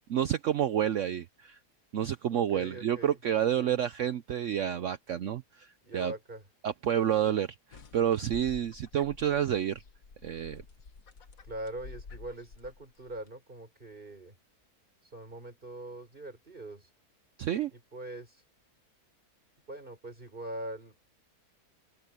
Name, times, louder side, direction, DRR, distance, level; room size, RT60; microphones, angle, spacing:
voice 1, 0.1-1.6 1.9-6.1 6.6-9.8 10.2-10.6 17.4-17.7, right 10 dB, 60° right, 0.9 m, -29 dB
voice 2, 2.3-3.2 3.5-3.8 5.8-6.4 11.4-14.3 15.0-16.9 17.7-18.4 19.7-21.0, right 1 dB, 35° right, 4.9 m, -42 dB
sound 1, 7.7-13.3, left 4 dB, 60° left, 1.9 m, -50 dB
open air
omnidirectional pair, 1.6 m